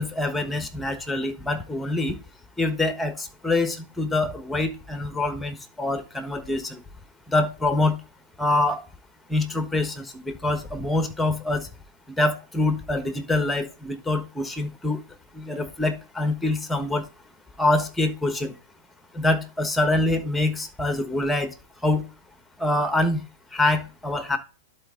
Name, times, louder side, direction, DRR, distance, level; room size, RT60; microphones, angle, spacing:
voice 1, 0.0-2.2 2.6-6.8 7.3-8.0 8.4-8.8 9.3-11.7 12.2-15.0 15.3-17.0 17.6-18.5 19.1-21.5 21.8-22.0 22.6-23.2 23.5-24.4, left 2 dB, 5° left, 1.3 m, -25 dB
11.0 x 4.3 x 3.8 m
hypercardioid pair, 140°, 0 cm